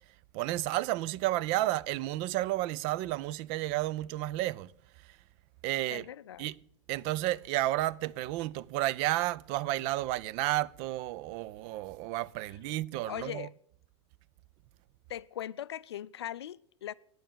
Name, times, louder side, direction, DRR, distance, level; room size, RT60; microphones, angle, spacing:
voice 1, 0.3-4.7 5.6-6.1 6.4-6.6 6.9-13.5, right 16 dB, 35° right, 0.4 m, -32 dB
voice 2, 5.9-6.5 13.0-13.5 15.1-16.9, left 11 dB, 60° left, 0.5 m, -40 dB
9.3 x 8.7 x 8.8 m
figure-of-eight pair, 90°, 15 cm